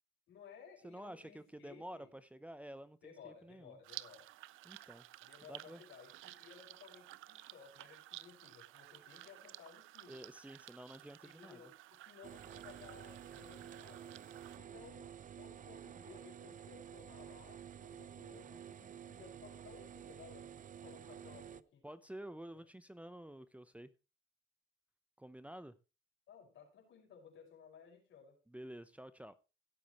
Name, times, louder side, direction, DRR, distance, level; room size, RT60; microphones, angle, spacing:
voice 1, 0.3-2.1 3.0-4.3 5.2-10.2 11.2-14.2 14.6-21.8 26.3-28.4, left 6 dB, 75° left, 5.4 m, -58 dB
voice 2, 0.8-3.8 4.6-5.0 5.5-5.8 10.1-11.6 21.8-23.9 25.2-25.7 28.5-29.3, right 1 dB, 5° right, 0.8 m, -50 dB
sound 1, 3.8-14.6, right 16 dB, 85° right, 0.5 m, -54 dB
sound 2, 12.2-21.6, right 9 dB, 40° right, 0.5 m, -51 dB
16.5 x 8.4 x 3.1 m
cardioid pair, 90°, 20 cm